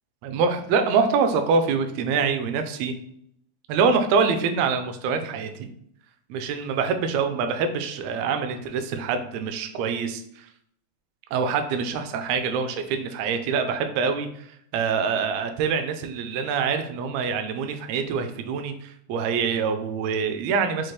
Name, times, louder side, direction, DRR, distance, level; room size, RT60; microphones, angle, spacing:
voice 1, 0.2-2.9 3.7-5.7 6.3-10.5 11.3-14.5 14.7-20.9, right 5 dB, 80° right, 7 dB, 1.5 m, -25 dB
5.8 x 2.5 x 3.2 m, 0.70 s
omnidirectional pair, 3.4 m